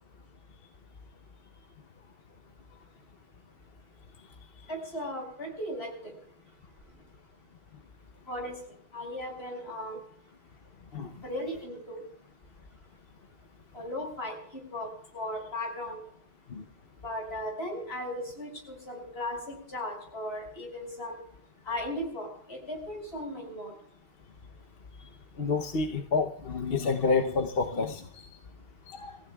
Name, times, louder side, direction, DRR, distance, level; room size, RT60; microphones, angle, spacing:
voice 1, 4.7-6.1 8.3-8.6 8.9-10.0 11.2-12.0 13.7-14.9 15.1-16.0 17.0-19.4 19.7-21.2 21.7-23.7, left 1 dB, 85° left, 1 dB, 5.9 m, -36 dB
voice 2, 25.4-28.3 28.9-29.1, left 4 dB, 65° left, 7 dB, 1.1 m, -29 dB
29.0 x 15.5 x 2.3 m, 0.63 s
omnidirectional pair, 1.0 m